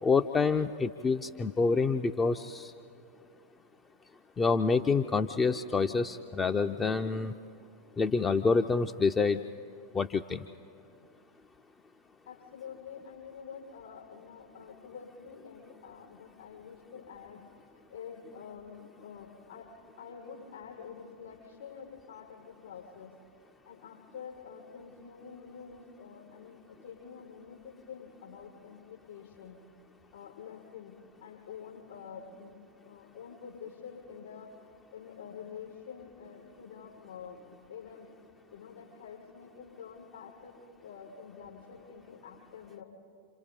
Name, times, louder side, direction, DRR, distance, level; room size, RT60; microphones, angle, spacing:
voice 1, 0.0-2.7 4.4-7.3 8.0-9.4 9.9-10.4, left 4 dB, 20° left, 8 dB, 0.5 m, -27 dB
voice 2, 12.2-19.7 20.0-23.2 23.6-29.6 30.1-38.1 38.5-40.5 40.8-42.8, left 7 dB, 60° left, -4 dB, 6.7 m, -47 dB
28.0 x 27.5 x 4.3 m, 2.5 s
figure-of-eight pair, 90°, 0 cm